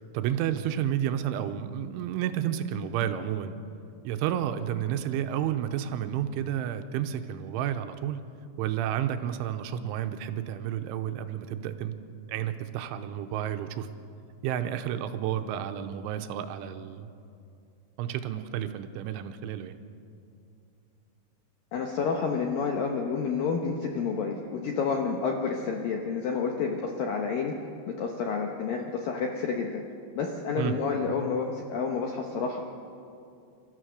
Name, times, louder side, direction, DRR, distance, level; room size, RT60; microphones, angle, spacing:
voice 1, 0.1-3.5 4.0-8.2 8.6-11.9 12.3-13.9 14.4-17.1 18.0-19.8 30.6-30.8, right 10 dB, 85° right, 8 dB, 3.2 m, -31 dB
voice 2, 21.7-27.5 27.9-29.8 30.2-32.6, left 5 dB, 75° left, 2 dB, 2.1 m, -29 dB
29.0 x 14.0 x 6.4 m, 2.5 s
omnidirectional pair, 5.6 m